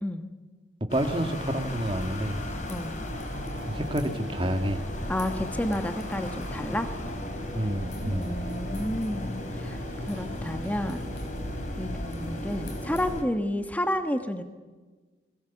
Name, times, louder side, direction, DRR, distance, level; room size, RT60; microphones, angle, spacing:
sound 1, 0.9-13.2, left 1 dB, 40° left, 3.3 m, -35 dB
voice 1, 0.9-2.4 3.7-4.8 7.5-8.4, right 1 dB, 30° right, 6 dB, 1.9 m, -29 dB
sound 2, 1.8-13.2, left 5 dB, 65° left, 5.5 m, -56 dB
voice 2, 2.7-3.0 5.1-6.9 8.0-11.2 11.8-14.4, left 1 dB, 10° left, 7 dB, 1.3 m, -31 dB
sound 3, 3.1-11.7 11.9-12.1, right 2 dB, 85° right, 3.3 m, -51 dB
29.5 x 22.0 x 7.2 m, 1.3 s
head